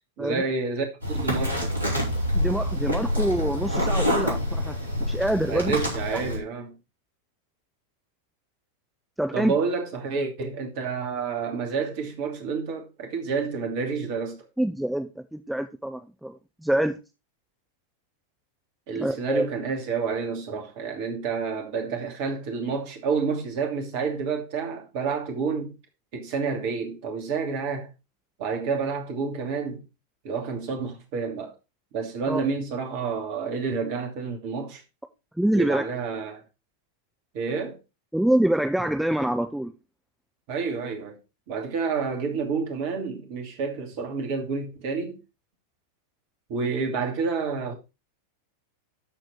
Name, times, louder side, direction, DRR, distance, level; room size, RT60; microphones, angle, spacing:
voice 1, 0.2-1.8 5.5-6.8 9.3-14.4 18.9-25.7 26.1-27.9 28.4-29.8 30.2-31.5 31.9-34.8 35.5-36.4 37.3-37.8 40.5-41.2 41.5-45.2 46.5-47.7, right 5 dB, 45° right, 2.7 m, -29 dB
sound 1, 1.0-6.4, left 1 dB, 75° right, 4.1 m, -26 dB
voice 2, 2.3-4.7 5.1-5.8 6.1-6.2 9.2-9.5 14.6-17.0 18.9-19.5 32.3-32.4 35.4-35.8 38.1-39.7, right 1 dB, ahead, 0.7 m, -25 dB
12.5 x 4.5 x 4.5 m
figure-of-eight pair, 90°, 0 cm